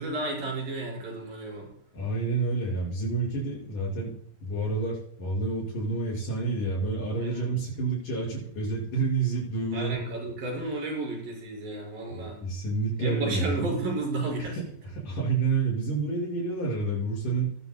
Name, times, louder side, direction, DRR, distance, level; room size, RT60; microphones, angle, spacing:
voice 1, 0.0-1.7 7.2-7.6 9.7-12.4 13.0-14.6, right 2 dB, 75° right, -3 dB, 6.9 m, -32 dB
voice 2, 1.9-4.1 4.4-10.0 12.1-13.7 15.0-17.6, right 3 dB, 65° left, -3 dB, 7.6 m, -29 dB
19.0 x 14.0 x 2.3 m, 0.65 s
omnidirectional pair, 4.1 m